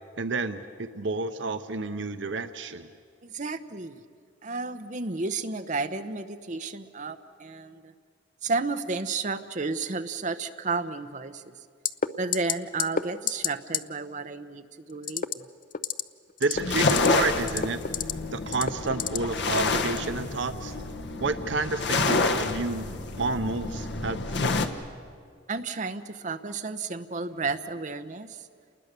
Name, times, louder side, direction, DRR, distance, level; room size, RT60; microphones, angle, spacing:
voice 1, 0.2-2.9 16.4-17.8 18.3-20.7 21.2-22.9 23.2-24.6, right 3 dB, 70° right, 9 dB, 0.8 m, -30 dB
voice 2, 3.2-4.0 4.4-7.9 8.4-11.5 12.2-15.4 25.5-28.5, right 3 dB, 40° right, 8 dB, 0.9 m, -32 dB
sound 1, 11.8-12.1 12.3-12.5 12.8-13.0 13.3-13.5 13.7-13.8 15.0-15.3 15.7-16.0 16.4-17.1 17.4-18.1 18.5-19.2 19.6-19.7, left 8 dB, 45° left, 0.6 m, -27 dB
sound 2, 16.5-24.7, left 3 dB, 60° left, 1.2 m, -28 dB
29.0 x 20.0 x 6.8 m, 2.2 s
head